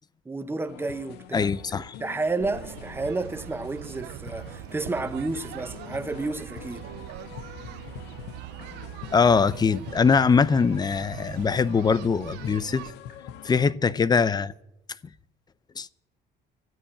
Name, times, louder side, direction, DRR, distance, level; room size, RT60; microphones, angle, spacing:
voice 1, 0.2-1.5 2.0-6.9, right 3 dB, 15° right, 0.9 m, -31 dB
sound 1, 0.7-13.7, left 11 dB, 85° left, 0.7 m, -45 dB
voice 2, 1.3-1.9 9.1-12.9 13.4-14.5 15.8-15.9, left 5 dB, 25° left, 0.5 m, -22 dB
sound 2, 2.4-12.9, right 17 dB, 90° right, 0.4 m, -42 dB
sound 3, 4.1-4.2 5.6-5.7 7.1-7.2 8.6-8.7 10.1-10.2 11.6-11.7 13.1-13.2, left 3 dB, 60° left, 5.9 m, -55 dB
13.5 x 8.5 x 8.9 m
cardioid pair, 110°, 17 cm